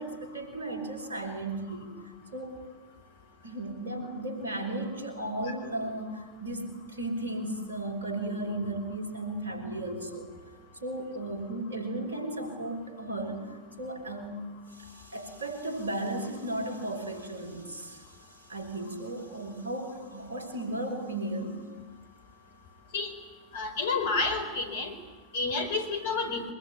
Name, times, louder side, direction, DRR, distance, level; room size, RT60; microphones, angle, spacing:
voice 1, 0.0-2.0 2.3-2.6 3.4-10.3 10.8-13.5 13.8-21.6, right 1 dB, 70° right, 4 dB, 5.6 m, -35 dB
voice 2, 23.5-24.9 25.3-26.4, left 3 dB, 60° left, 7 dB, 4.3 m, -29 dB
24.5 x 21.5 x 9.6 m, 1.3 s
figure-of-eight pair, 90°, 0 cm